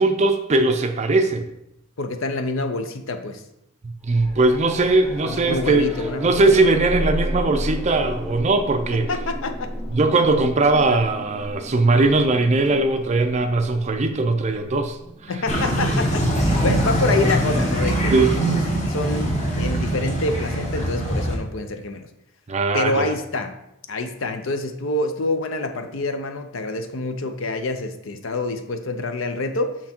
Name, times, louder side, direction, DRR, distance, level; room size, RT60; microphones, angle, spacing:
voice 1, 0.0-1.5 3.8-5.9 6.2-9.1 9.9-15.0 15.2-15.3 18.1-18.3 22.5-23.1, right 2 dB, 30° right, 7 dB, 0.5 m, -19 dB
voice 2, 2.0-3.4 5.2-6.6 9.1-9.7 10.9-11.0 15.3-18.6 18.9-22.1 22.7-23.6 23.9-29.8, left 2 dB, 60° left, 7 dB, 0.6 m, -27 dB
sound 1, 4.1-16.9 19.3-19.4, equal, ahead, 0.9 m, -33 dB
sound 2, 15.5-21.3, right 1 dB, 35° left, 1.4 m, -22 dB
6.0 x 5.9 x 4.3 m, 0.83 s
head